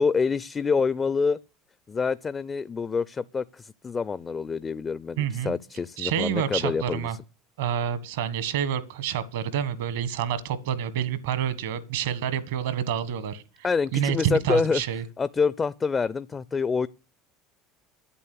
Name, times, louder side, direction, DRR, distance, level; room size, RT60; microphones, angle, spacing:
voice 1, 0.0-1.4 1.9-7.2 13.6-14.8 15.2-16.9, left 5 dB, 30° left, 0.5 m, -26 dB
voice 2, 5.2-5.5 6.0-7.2 7.6-13.4 13.9-15.0, right 9 dB, 70° right, 1.4 m, -28 dB
10.0 x 8.9 x 8.5 m
hypercardioid pair, 70°, 0 cm